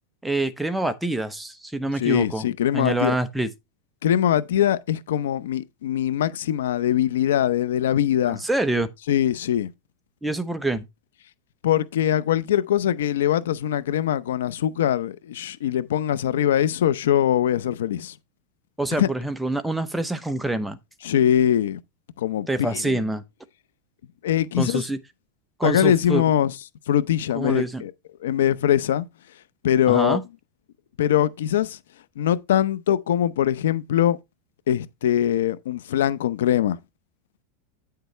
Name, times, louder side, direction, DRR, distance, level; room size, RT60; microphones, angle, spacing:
voice 1, 0.2-2.5 2.7-3.5 8.2-8.9 10.2-10.8 18.8-20.8 22.5-23.2 24.6-25.0 25.6-26.2 27.3-27.8 29.9-30.2, right 2 dB, 5° right, 0.7 m, -26 dB
voice 2, 2.0-3.2 4.0-8.4 9.1-9.7 11.6-18.2 19.0-19.1 21.0-21.8 22.2-22.5 22.7-23.0 24.2-24.8 25.6-26.5 26.9-27.9 28.2-29.1 29.6-30.2 31.0-31.8 32.2-34.2 34.7-36.8, left 10 dB, 90° left, 0.6 m, -22 dB
9.2 x 6.7 x 3.2 m
supercardioid pair, 150°, 0 cm